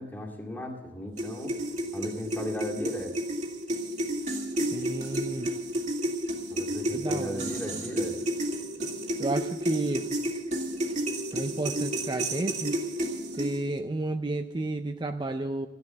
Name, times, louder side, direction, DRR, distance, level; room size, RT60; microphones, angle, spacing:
voice 1, 0.0-1.6 1.9-3.2 6.5-8.2, left 1 dB, 10° left, 0 dB, 2.1 m, -36 dB
sound 1, 1.2-13.8, right 1 dB, 40° right, 2.1 m, -31 dB
voice 2, 4.7-5.5 6.9-7.4 9.2-10.1 11.3-12.7 13.4-15.7, right 2 dB, 25° right, 7 dB, 0.5 m, -31 dB
14.5 x 10.5 x 7.8 m, 1.1 s
head